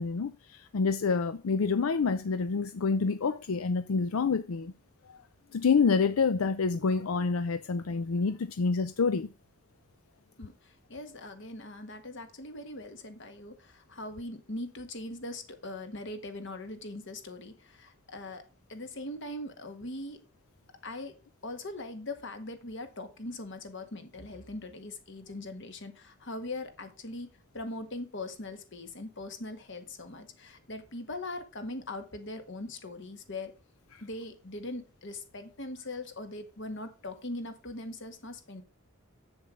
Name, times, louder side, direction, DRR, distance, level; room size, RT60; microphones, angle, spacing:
voice 1, 0.0-4.7 5.1-5.2 5.5-9.3, left 5 dB, 80° left, 0.5 m, -27 dB
voice 2, 10.4-18.4 18.7-20.2 20.8-21.1 21.4-27.3 27.5-33.5 34.0-38.6, left 2 dB, 60° left, 1.6 m, -41 dB
7.8 x 7.0 x 5.0 m
head